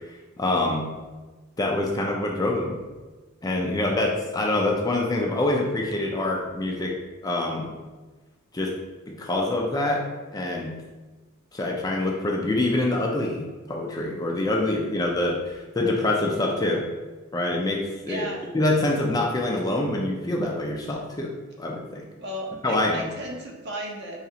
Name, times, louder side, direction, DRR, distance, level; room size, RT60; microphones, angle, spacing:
voice 1, 0.4-0.9 1.6-2.8 3.4-6.9 7.2-7.7 8.5-8.7 9.1-10.0 10.3-10.7 11.5-16.9 17.3-18.3 18.5-21.3 21.6-22.0 22.6-23.1, left 2 dB, 15° left, -1 dB, 0.3 m, -25 dB
voice 2, 3.7-4.1 14.8-15.2 18.0-18.5 22.2-24.2, right 1 dB, 50° right, -1 dB, 0.7 m, -36 dB
4.8 x 2.4 x 2.8 m, 1.3 s
head